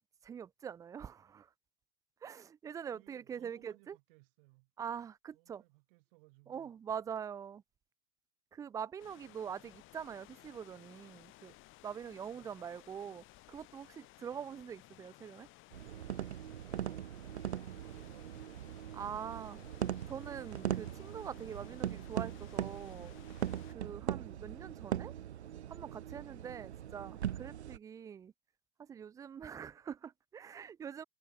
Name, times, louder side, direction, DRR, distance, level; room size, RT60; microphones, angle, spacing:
voice 1, 0.2-1.5 2.2-4.0 4.8-5.6 6.5-7.6 8.5-11.5 11.8-15.5 18.9-19.6 20.1-23.1 23.7-25.1 25.7-28.3 28.8-31.0, right 8 dB, 10° right, 0.4 m, -44 dB
voice 2, 2.8-4.7 5.3-6.7 12.2-12.6 14.2-14.5 16.7-19.5, right 24 dB, 55° right, 7.9 m, -65 dB
sound 1, 9.0-23.8, left 20 dB, 40° left, 2.1 m, -59 dB
sound 2, 15.7-27.8, right 10 dB, 90° right, 1.1 m, -40 dB
hypercardioid pair, 125°, 32 cm